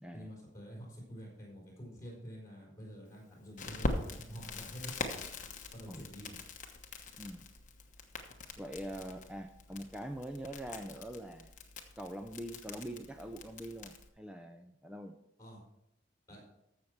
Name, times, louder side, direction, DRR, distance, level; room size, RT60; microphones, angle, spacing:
voice 1, 0.1-5.2 5.7-6.4 15.4-15.6 16.3-16.4, equal, 15° left, -3 dB, 4.4 m, -48 dB
Crackle, 3.6-14.1, left 2 dB, 35° left, 1.1 m, -43 dB
voice 2, 8.6-11.5 12.0-15.2, right 1 dB, 5° right, 6 dB, 0.4 m, -44 dB
14.0 x 6.6 x 4.5 m, 0.84 s
head